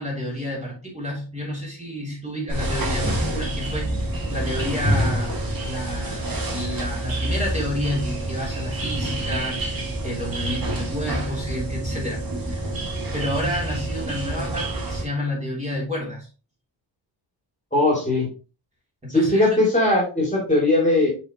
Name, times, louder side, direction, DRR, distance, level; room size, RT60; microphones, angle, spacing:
voice 1, 0.0-5.4 5.6-12.7 13.1-16.3 19.0-19.5, left 1 dB, 15° right, 3.2 m, -30 dB
sound 1, 2.5-15.0, right 1 dB, 50° right, 2.1 m, -27 dB
voice 2, 17.7-18.3 19.1-21.1, left 2 dB, 15° left, 2.6 m, -19 dB
6.8 x 5.2 x 2.9 m
wide cardioid pair, 130°, 46 cm